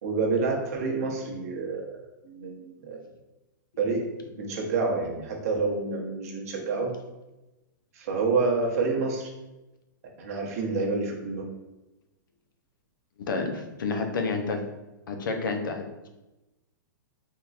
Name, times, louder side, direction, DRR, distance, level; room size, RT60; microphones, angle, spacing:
voice 1, 0.0-3.0 3.8-6.9 7.9-9.3 10.2-11.5, right 4 dB, 50° right, 0 dB, 0.8 m, -28 dB
voice 2, 13.2-14.7 15.1-16.1, left 4 dB, 80° left, 5 dB, 0.6 m, -30 dB
3.6 x 2.9 x 2.4 m, 1.0 s
hypercardioid pair, 165°, 11 cm